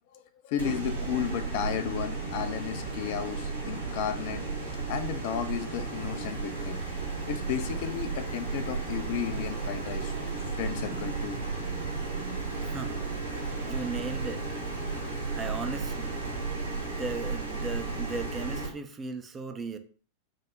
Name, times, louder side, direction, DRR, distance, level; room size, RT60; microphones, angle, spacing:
voice 1, 0.1-4.4 4.9-6.8 7.3-10.1 10.5-11.4 14.8-15.1, left 9 dB, 50° left, 0.5 m, -33 dB
sound 1, 0.6-18.7, right 3 dB, 90° left, 2.2 m, -34 dB
Organ, 9.2-16.5, right 5 dB, 60° right, 0.7 m, -46 dB
voice 2, 12.6-13.1 13.3-14.6 15.4-16.2 16.8-19.8, right 4 dB, 20° right, 0.5 m, -37 dB
5.1 x 2.1 x 3.7 m
figure-of-eight pair, 90°, 0 cm